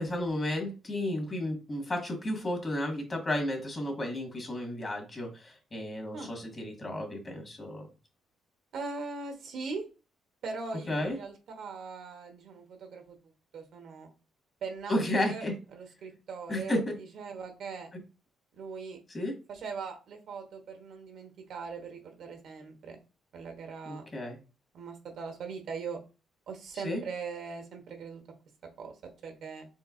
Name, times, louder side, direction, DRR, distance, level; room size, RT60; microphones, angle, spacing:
voice 1, 0.0-7.9 10.9-11.2 14.9-15.5 16.5-16.9 19.1-19.4 23.8-24.4 26.8-27.0, left 1 dB, 30° left, 1 dB, 1.7 m, -32 dB
voice 2, 8.7-9.9 10.4-13.2 13.5-14.1 14.6-15.0 15.3-15.4 15.7-17.9 18.5-19.0 19.5-23.0 23.3-24.0 24.7-26.0 26.5-28.2 28.6-28.9 29.2-29.7, right 4 dB, 70° right, 4 dB, 1.0 m, -40 dB
4.5 x 3.7 x 2.5 m, 0.32 s
cardioid pair, 90°, 0 cm